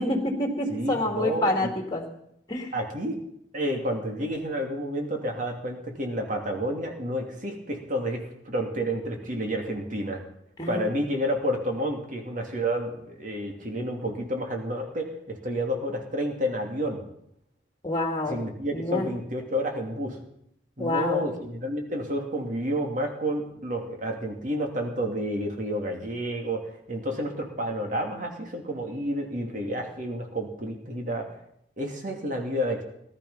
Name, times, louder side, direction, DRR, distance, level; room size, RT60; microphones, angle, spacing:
voice 1, 0.0-2.0 2.5-2.7 10.6-10.9 17.8-18.4 18.7-19.1 20.8-21.2, left 1 dB, 20° left, 3 dB, 2.4 m, -27 dB
voice 2, 0.7-1.7 2.7-3.2 3.5-10.2 10.7-17.0 18.3-20.2 20.8-31.3 31.8-32.8, equal, 45° right, 2 dB, 2.7 m, -30 dB
19.0 x 12.0 x 5.6 m, 0.75 s
head